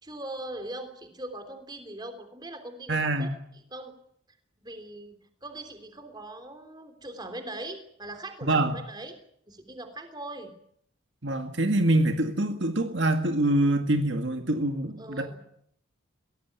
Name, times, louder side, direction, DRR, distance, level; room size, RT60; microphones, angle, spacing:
voice 1, 0.0-3.3 3.7-3.9 4.6-9.2 9.5-10.5 15.0-15.4, right 1 dB, 20° right, 8 dB, 3.3 m, -40 dB
voice 2, 2.9-3.3 8.5-8.7 11.2-15.4, right 1 dB, 60° right, 6 dB, 1.9 m, -25 dB
23.0 x 18.0 x 9.5 m, 0.72 s
head